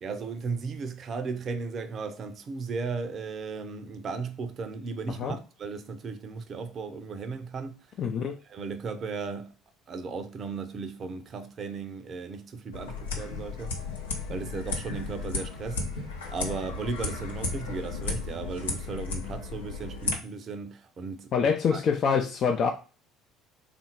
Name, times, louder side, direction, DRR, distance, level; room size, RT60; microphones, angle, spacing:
voice 1, 0.0-7.9 8.5-9.5 9.9-13.8 14.3-21.8, right 4 dB, 45° right, 0.6 m, -36 dB
voice 2, 8.0-8.4 21.3-22.7, left 6 dB, 50° left, 0.5 m, -25 dB
sound 1, 12.7-20.2, left 3 dB, 80° left, 0.7 m, -34 dB
3.6 x 2.6 x 4.3 m
figure-of-eight pair, 60°, 0 cm